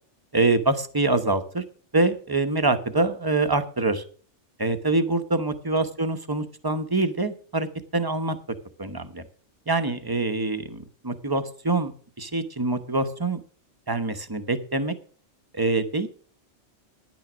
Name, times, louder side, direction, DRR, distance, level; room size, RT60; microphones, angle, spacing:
voice 1, 0.3-1.6 1.9-4.0 4.6-7.7 7.9-8.4 8.8-9.2 9.7-11.9 12.2-13.4 13.9-14.9 15.5-16.1, right 2 dB, 20° right, 9 dB, 0.8 m, -25 dB
10.5 x 9.2 x 6.1 m, 0.43 s
omnidirectional pair, 1.2 m